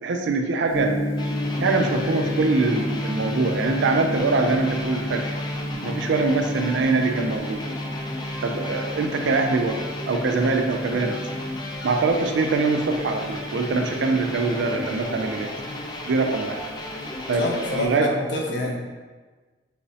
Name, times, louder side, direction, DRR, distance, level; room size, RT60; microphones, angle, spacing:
voice 1, 0.0-1.0 1.6-5.2 5.8-7.6 8.4-9.8 10.1-11.2 11.8-15.5 16.1-16.6 17.3-18.2 18.6-18.7, right 3 dB, 70° right, 4 dB, 0.4 m, -23 dB
Gong, 0.7-18.0, left 1 dB, 15° right, 0.8 m, -32 dB
sound 1, 1.2-17.9, left 1 dB, 25° left, 0.3 m, -34 dB
voice 2, 17.4-18.8, left 2 dB, 65° left, 0 dB, 0.6 m, -27 dB
4.8 x 2.0 x 2.7 m, 1.3 s
head